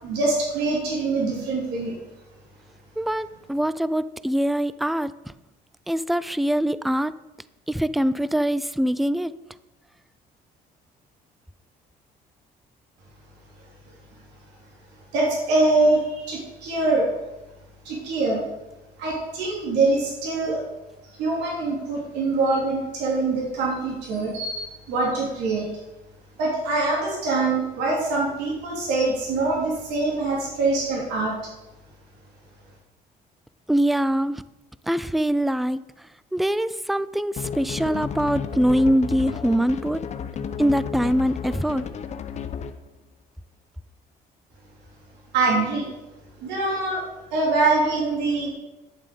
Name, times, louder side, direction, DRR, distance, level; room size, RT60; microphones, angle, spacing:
voice 1, 0.0-2.0 15.1-17.1 17.8-18.4 19.0-20.6 21.2-25.7 26.4-31.3 45.3-45.9 46.4-47.0 47.3-48.5, right 3 dB, 85° right, -4 dB, 3.7 m, -24 dB
voice 2, 3.0-5.1 5.9-7.1 7.7-9.3 33.7-34.4 34.9-35.8 36.3-40.0 40.6-41.9, equal, ahead, 16 dB, 0.4 m, -23 dB
sound 1, 37.4-42.9, left 7 dB, 40° left, 0.7 m, -32 dB
10.5 x 7.2 x 5.3 m, 1.0 s
cardioid pair, 110°, 17 cm